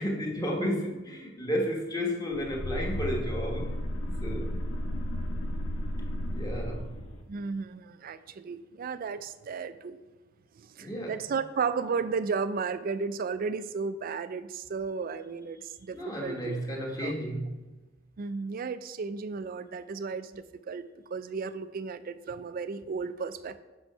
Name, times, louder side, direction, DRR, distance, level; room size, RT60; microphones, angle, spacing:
voice 1, 0.0-3.7 4.2-4.5 6.3-6.9 10.8-11.3 15.9-17.6, equal, 20° left, 0 dB, 1.2 m, -32 dB
sound 1, 2.3-7.2, equal, 85° left, 1.1 m, -33 dB
voice 2, 7.3-10.0 10.6-16.6 17.0-17.1 18.2-20.9 21.1-23.6, right 5 dB, 45° right, 13 dB, 0.4 m, -34 dB
6.1 x 5.5 x 5.4 m, 1.2 s
head